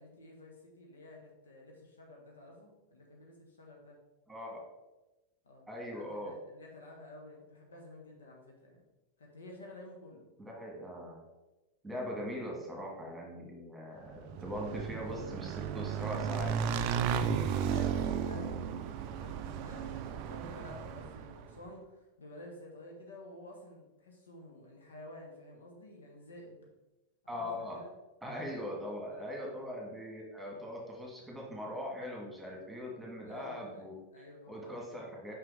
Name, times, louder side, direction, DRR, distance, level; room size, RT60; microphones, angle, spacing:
voice 1, 0.0-4.0 5.4-8.8 9.2-10.3 12.9-13.2 17.2-18.7 19.0-26.7 27.2-27.9 28.5-28.6 29.1-29.3 33.2-34.8, left 1 dB, 70° left, 0 dB, 1.3 m, -51 dB
voice 2, 4.3-4.6 5.7-6.3 10.4-11.2 11.8-16.6 27.3-27.8 28.2-35.3, left 1 dB, 5° right, -2 dB, 1.8 m, -41 dB
Motorcycle / Engine, 14.1-21.5, right 7 dB, 45° right, 0.4 m, -34 dB
5.9 x 5.5 x 3.3 m, 1.1 s
figure-of-eight pair, 90°, 0 cm